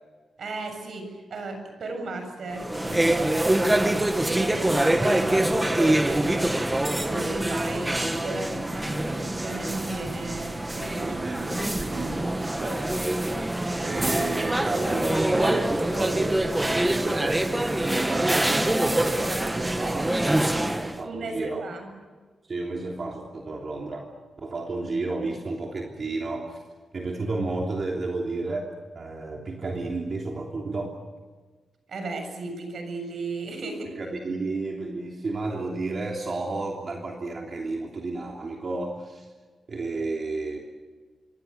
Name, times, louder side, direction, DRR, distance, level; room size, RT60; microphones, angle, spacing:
voice 1, 0.4-3.3 4.3-6.5 6.9-11.2 21.0-21.9 31.9-34.0, right 3 dB, 60° right, 6 dB, 7.5 m, -35 dB
sound 1, 2.5-21.0, right 1 dB, 10° right, 1.6 m, -25 dB
voice 2, 11.1-13.0 13.8-17.5 18.0-20.2 20.8-21.6 22.5-24.1 24.4-26.6 26.9-30.9 34.0-39.3 39.7-40.6, right 3 dB, 40° right, 0 dB, 3.2 m, -32 dB
26.5 x 24.5 x 6.9 m, 1.4 s
wide cardioid pair, 135°, 0 cm